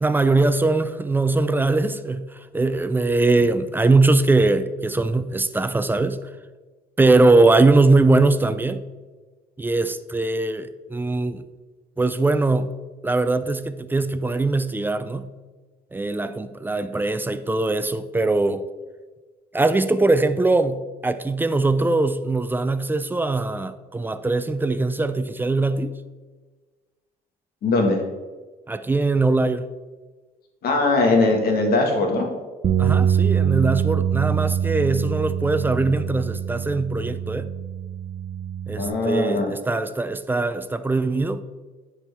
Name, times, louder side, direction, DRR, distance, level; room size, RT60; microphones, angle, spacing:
voice 1, 0.0-6.3 7.0-8.8 9.6-11.5 12.0-12.7 13.0-15.3 15.9-18.6 19.5-25.9 28.7-29.7 32.8-37.5 38.7-41.4, right 3 dB, 10° right, 12 dB, 0.4 m, -21 dB
voice 2, 27.6-28.0 30.6-32.3 38.8-39.5, left 2 dB, 65° left, 2 dB, 1.6 m, -20 dB
sound 1, 32.6-38.9, right 8 dB, 40° right, 0.7 m, -24 dB
9.7 x 4.5 x 3.5 m, 1.3 s
cardioid pair, 110°, 17 cm